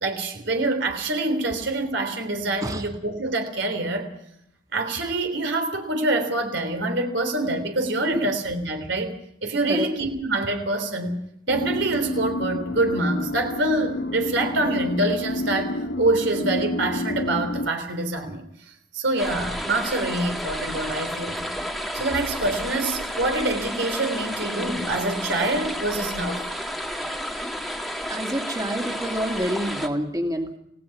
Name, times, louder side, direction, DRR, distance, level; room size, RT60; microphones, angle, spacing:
voice 1, 0.0-4.1 4.7-9.2 9.4-11.2 11.5-18.4 18.9-21.5 21.9-26.5, right 2 dB, 70° right, 5 dB, 3.5 m, -25 dB
sound 1, 11.5-17.7, left 1 dB, 60° left, 0.9 m, -29 dB
sound 2, 19.2-29.9, equal, ahead, 1.8 m, -31 dB
voice 2, 28.1-30.6, equal, 20° right, 3 dB, 2.7 m, -27 dB
28.5 x 17.5 x 5.9 m, 0.75 s
head